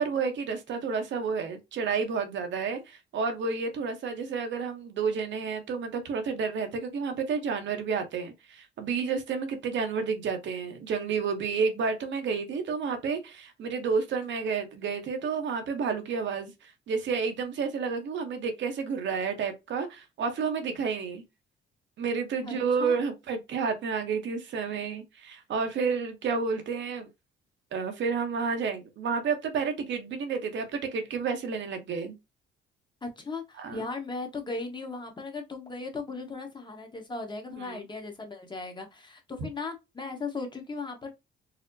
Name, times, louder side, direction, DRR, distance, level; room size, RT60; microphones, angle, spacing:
voice 1, 0.0-21.2 22.0-27.1 27.7-32.2 33.6-33.9 37.6-37.8, right 5 dB, 65° right, 0.9 m, -30 dB
voice 2, 22.4-23.0 33.0-41.1, left 3 dB, 25° left, 1.0 m, -37 dB
4.2 x 2.0 x 2.6 m
cardioid pair, 90°, 20 cm